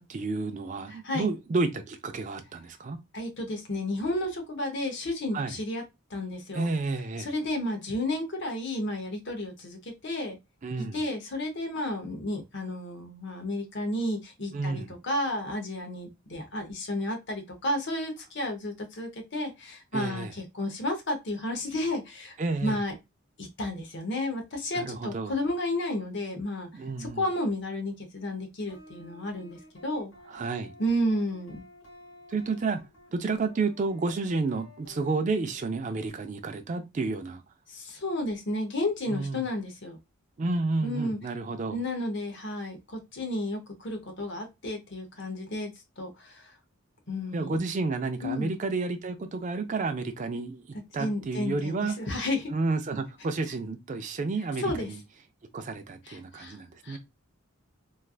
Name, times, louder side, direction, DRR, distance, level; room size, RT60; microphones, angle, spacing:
voice 1, 0.0-3.0 5.3-5.6 6.5-7.3 10.6-11.0 14.5-14.9 19.9-20.3 22.4-22.8 24.7-25.4 26.7-27.2 30.3-30.8 32.3-32.8 33.1-37.4 39.1-39.4 40.4-41.8 47.3-50.6 50.9-52.0 52.5-55.0 55.5-57.0, right 3 dB, 35° right, 0.4 m, -31 dB
voice 2, 0.9-1.3 3.1-5.8 6.1-6.7 7.2-10.4 10.8-22.4 22.6-23.0 23.4-30.1 30.8-31.6 37.7-40.0 40.8-41.2 41.7-45.7 46.0-46.6 47.1-47.7 48.2-48.5 51.0-52.5 54.6-54.9 56.0-57.0, left 1 dB, 55° left, 0.9 m, -32 dB
sound 1, 28.7-36.1, left 2 dB, 70° left, 1.8 m, -53 dB
3.2 x 2.4 x 2.3 m
head